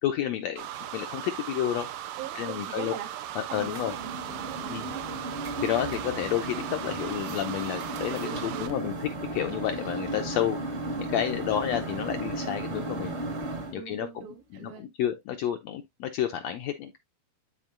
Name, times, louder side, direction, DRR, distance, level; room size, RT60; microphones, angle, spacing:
voice 1, 0.0-0.7 0.9-1.9 2.3-2.9 3.3-3.9 4.7-4.9 5.6-8.9 9.3-10.6 11.0-13.2 13.7-14.1 14.6-17.0, left 11 dB, 75° left, 1.6 m, -30 dB
sound 1, 0.6-8.8, right 11 dB, 90° right, 2.4 m, -38 dB
voice 2, 2.2-5.1 5.9-6.1 8.2-8.8 13.7-14.9, right 9 dB, 70° right, 2.2 m, -41 dB
sound 2, 3.5-13.7, right 2 dB, 35° right, 1.1 m, -35 dB
12.0 x 4.3 x 2.5 m
omnidirectional pair, 3.8 m